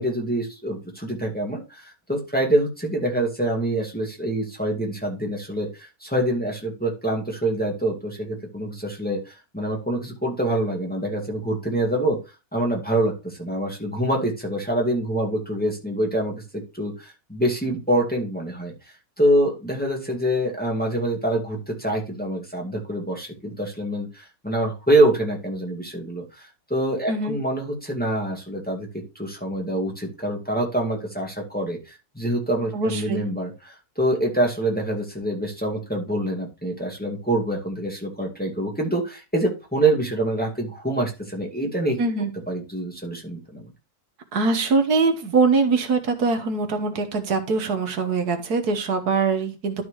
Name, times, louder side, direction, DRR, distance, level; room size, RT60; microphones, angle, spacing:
voice 1, 0.0-12.2 12.5-18.7 19.2-42.0 42.5-43.7, right 1 dB, 5° left, -1 dB, 2.1 m, -25 dB
voice 2, 32.7-33.2 42.0-42.3 44.3-49.8, right 4 dB, 90° right, 7 dB, 1.8 m, -22 dB
12.5 x 4.5 x 3.2 m, 0.29 s
omnidirectional pair, 1.6 m